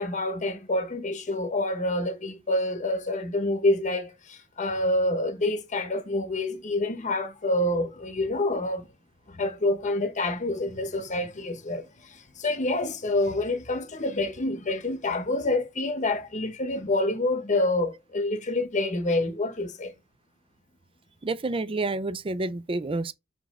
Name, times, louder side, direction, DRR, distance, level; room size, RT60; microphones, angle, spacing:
voice 1, 0.0-8.9 9.3-19.9, left 2 dB, 35° left, 1.0 m, -27 dB
voice 2, 21.2-23.1, right 2 dB, 25° right, 0.5 m, -29 dB
6.2 x 5.1 x 3.6 m
head